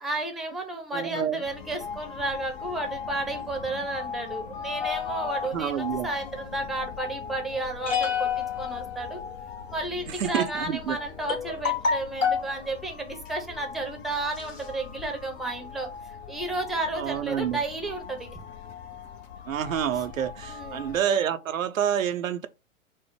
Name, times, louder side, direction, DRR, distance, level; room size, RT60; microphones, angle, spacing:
voice 1, 0.0-9.2 9.7-15.9 16.3-18.4 20.5-20.8, right 2 dB, ahead, 0.7 m, -32 dB
voice 2, 0.9-1.4 5.5-6.1 10.2-11.0 16.9-17.6 19.5-22.5, right 9 dB, 85° right, 0.6 m, -28 dB
sound 1, 1.4-21.0, left 6 dB, 50° left, 0.8 m, -40 dB
sound 2, 4.8-6.1 7.9-9.6 10.6-10.7 11.3-12.5 13.3-13.5 14.0-14.1 14.3-15.1, left 6 dB, 70° left, 1.6 m, -30 dB
4.3 x 2.0 x 4.5 m
hypercardioid pair, 115°, 39 cm